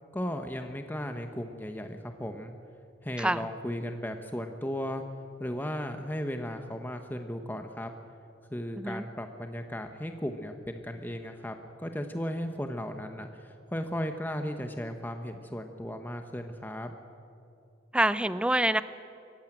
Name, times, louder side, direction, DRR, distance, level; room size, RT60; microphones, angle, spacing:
voice 1, 0.1-2.5 3.0-5.0 5.4-7.9 8.5-16.9, equal, 10° left, 6 dB, 0.9 m, -36 dB
voice 2, 17.9-18.8, right 1 dB, 5° right, 14 dB, 0.5 m, -26 dB
24.5 x 15.0 x 9.0 m, 2.5 s
head